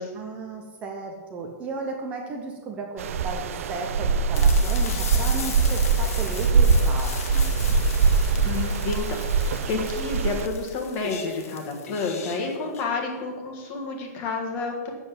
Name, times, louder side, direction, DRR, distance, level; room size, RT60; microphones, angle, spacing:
voice 1, 0.1-7.6, right 3 dB, 15° right, 1 dB, 0.8 m, -35 dB
sound 1, 3.0-10.5, right 4 dB, 55° right, 0.6 m, -22 dB
sound 2, 4.3-12.8, left 6 dB, 60° left, 1.8 m, -38 dB
voice 2, 8.4-14.9, left 4 dB, 25° left, 2 dB, 1.6 m, -30 dB
8.0 x 7.7 x 8.5 m, 1.4 s
hypercardioid pair, 175°, 9 cm